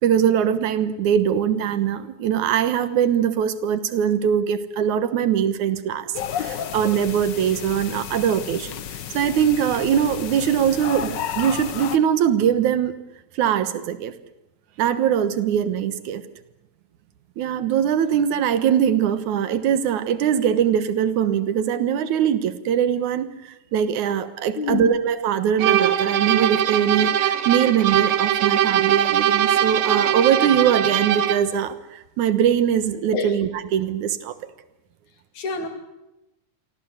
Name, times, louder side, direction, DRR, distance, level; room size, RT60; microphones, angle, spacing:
voice 1, 0.0-8.7 9.1-12.9 13.3-14.1 14.8-16.2 17.4-23.3 23.7-34.4, right 9 dB, 80° right, 13 dB, 2.7 m, -22 dB
sound 1, 6.1-12.0, left 9 dB, 60° left, 1.1 m, -32 dB
voice 2, 24.6-24.9 33.1-33.3 35.3-35.7, left 5 dB, 80° left, 7 dB, 4.1 m, -26 dB
sound 2, 25.6-31.5, right 10 dB, 60° right, 1.7 m, -21 dB
27.5 x 24.0 x 8.1 m, 0.96 s
omnidirectional pair, 3.4 m